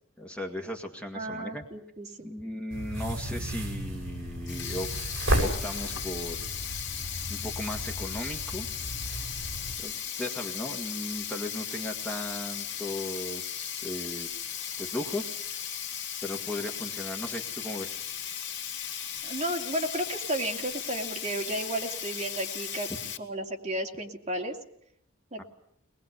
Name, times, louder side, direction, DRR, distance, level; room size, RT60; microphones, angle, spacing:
voice 1, 0.2-1.6 2.2-4.9 5.4-6.4 7.3-8.7 9.8-14.3 14.8-15.6 16.2-18.0 25.4-25.5, left 1 dB, 5° left, 2 dB, 1.8 m, -37 dB
voice 2, 1.1-2.3 19.2-22.9 23.2-24.6 25.3-25.4, right 1 dB, 35° right, 1 dB, 2.6 m, -33 dB
sound 1, 2.7-9.7, right 1 dB, 60° right, 6.9 m, -33 dB
Sink (filling or washing), 4.5-23.2, left 9 dB, 55° left, 2.1 m, -36 dB
23.0 x 20.5 x 8.3 m, 0.70 s
head